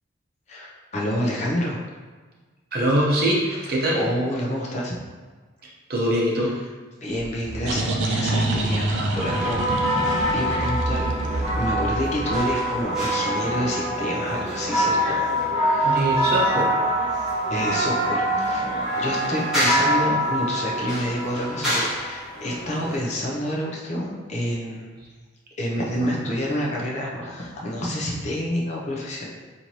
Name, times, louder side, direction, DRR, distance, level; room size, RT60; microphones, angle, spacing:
voice 1, 0.5-1.8 3.6-5.0 7.0-11.1 11.5-15.2 15.5-16.0 17.5-18.7 19.0-24.9 25.6-29.3, equal, 35° left, -4 dB, 0.5 m, -28 dB
voice 2, 2.7-4.0 5.9-6.5 15.8-16.7, right 1 dB, 50° right, -4 dB, 0.8 m, -22 dB
sound 1, 7.2-12.7, right 2 dB, 70° right, 0.5 m, -27 dB
sound 2, 9.2-23.0, equal, 5° right, 1.2 m, -24 dB
4.4 x 2.7 x 2.9 m, 1.4 s
head